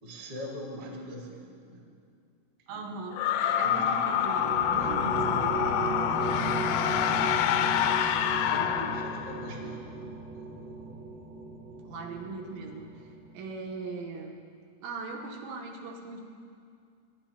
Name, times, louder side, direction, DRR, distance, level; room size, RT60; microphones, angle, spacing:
voice 1, 0.0-1.9 2.7-3.0 3.4-4.0 4.8-5.7 6.1-7.7 8.5-10.9, equal, 35° right, -3 dB, 1.7 m, -43 dB
voice 2, 2.7-3.3 3.6-5.7 11.8-12.9 13.3-14.4 14.8-16.2, right 3 dB, 80° right, 1 dB, 3.3 m, -39 dB
sound 1, 3.1-9.6, left 10 dB, 85° left, 2.6 m, -27 dB
sound 2, 3.7-13.4, right 2 dB, 60° right, 2.9 m, -36 dB
24.0 x 11.5 x 2.9 m, 2.3 s
omnidirectional pair, 5.3 m